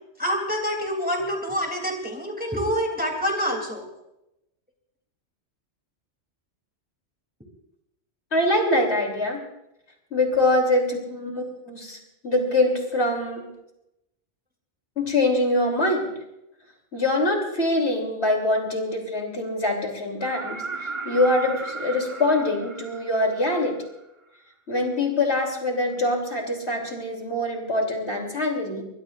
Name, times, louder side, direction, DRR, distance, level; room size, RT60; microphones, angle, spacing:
voice 1, 0.2-3.8, equal, 10° right, 1 dB, 3.0 m, -27 dB
voice 2, 8.3-9.4 10.1-13.5 15.0-16.1 16.9-23.7 24.7-28.8, left 1 dB, 70° left, 1 dB, 3.6 m, -24 dB
sound 1, 20.2-24.0 25.9-26.0, right 3 dB, 30° right, 0.9 m, -36 dB
23.5 x 21.5 x 2.5 m, 0.88 s
omnidirectional pair, 1.1 m